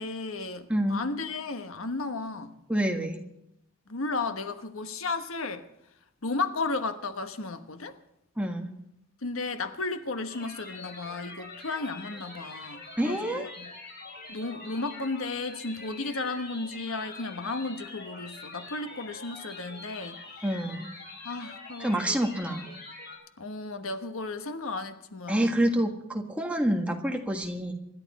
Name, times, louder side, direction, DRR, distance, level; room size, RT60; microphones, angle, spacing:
voice 1, 0.0-2.6 3.9-5.7 6.2-8.0 9.2-13.7 14.3-20.2 21.2-22.3 23.4-25.6, left 3 dB, 75° left, 1.2 m, -34 dB
voice 2, 0.7-1.0 2.7-3.2 8.4-8.7 13.0-13.4 20.4-20.9 21.8-22.7 25.3-27.7, right 1 dB, 5° right, 1.6 m, -27 dB
sound 1, 10.3-23.2, left 3 dB, 50° left, 5.5 m, -44 dB
25.5 x 11.5 x 4.2 m
head